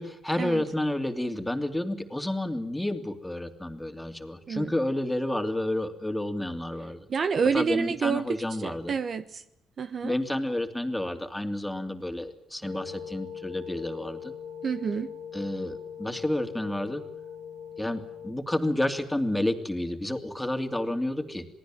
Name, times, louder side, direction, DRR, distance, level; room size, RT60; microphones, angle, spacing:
voice 1, 0.0-7.1 7.5-8.9 10.0-14.3 15.3-17.0 17.8-21.5, left 1 dB, 5° left, 7 dB, 2.8 m, -30 dB
voice 2, 7.1-9.4 9.8-10.1 14.6-15.1, right 6 dB, 50° right, 11 dB, 1.2 m, -28 dB
sound 1, 12.6-18.3, left 7 dB, 70° right, 5.7 m, -41 dB
27.5 x 19.0 x 7.6 m, 0.76 s
cardioid pair, 90°, 0 cm